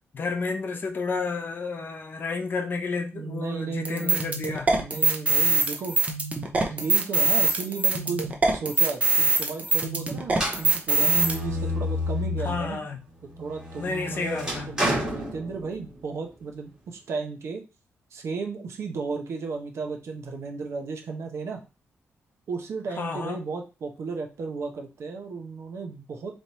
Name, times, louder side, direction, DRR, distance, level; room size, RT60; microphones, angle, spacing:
voice 1, 0.1-4.7 12.4-13.0 13.8-14.7 23.0-23.4, left 4 dB, 45° left, 0.8 m, -31 dB
voice 2, 3.1-4.2 4.7-6.0 6.5-8.2 8.5-12.8 13.2-17.6 18.1-21.6 22.5-26.3, right 4 dB, 70° right, 1.0 m, -34 dB
sound 1, 3.8-11.3, right 3 dB, 30° right, 0.8 m, -23 dB
sound 2, 10.3-12.7 13.2-16.0, left 1 dB, 15° right, 1.8 m, -30 dB
3.6 x 3.1 x 4.2 m
wide cardioid pair, 140°, 5 cm